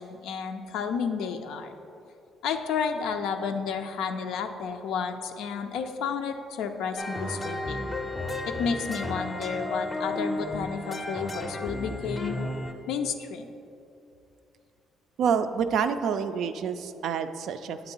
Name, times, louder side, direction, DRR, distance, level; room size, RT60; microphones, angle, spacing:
voice 1, 0.0-1.8 2.4-7.9 8.5-12.4 12.9-13.5, left 6 dB, 90° left, 5 dB, 0.4 m, -31 dB
sound 1, 7.0-12.7, left 1 dB, 20° left, 0.5 m, -33 dB
voice 2, 15.2-17.9, right 7 dB, 65° right, 10 dB, 0.3 m, -28 dB
8.5 x 3.9 x 4.5 m, 2.7 s
cardioid pair, 145°, 0 cm